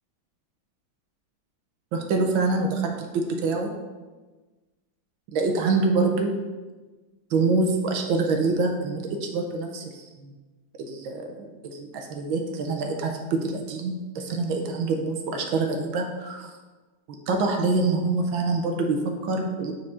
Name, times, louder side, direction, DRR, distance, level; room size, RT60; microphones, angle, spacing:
voice 1, 1.9-3.7 5.3-6.3 7.3-10.3 10.9-16.5 17.3-19.7, right 3 dB, 75° right, 3 dB, 1.5 m, -25 dB
6.7 x 4.9 x 4.2 m, 1.3 s
omnidirectional pair, 2.3 m